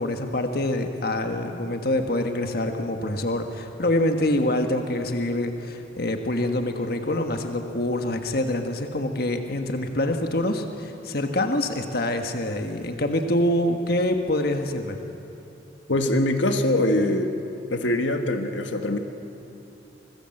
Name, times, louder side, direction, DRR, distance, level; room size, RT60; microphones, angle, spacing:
voice 1, 0.0-15.0, left 1 dB, 55° left, 5 dB, 1.5 m, -25 dB
voice 2, 15.9-17.3 17.7-19.0, left 1 dB, 85° left, 6 dB, 1.6 m, -23 dB
26.0 x 20.0 x 7.9 m, 2.9 s
head